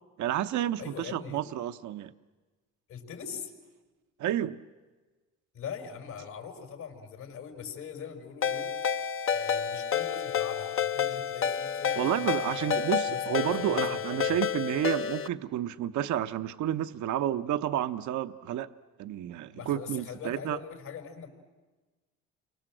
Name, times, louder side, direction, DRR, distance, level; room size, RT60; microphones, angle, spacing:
voice 1, 0.2-2.1 4.2-4.6 12.0-18.7 19.0-20.6, right 11 dB, 65° right, 10 dB, 0.8 m, -30 dB
voice 2, 0.8-1.4 2.9-3.5 5.5-8.7 9.2-14.4 19.5-21.3, left 7 dB, 70° left, 2 dB, 5.6 m, -42 dB
Ringtone, 8.4-15.3, left 7 dB, 45° left, 0.8 m, -30 dB
29.5 x 24.5 x 7.8 m, 1.3 s
cardioid pair, 80°, 31 cm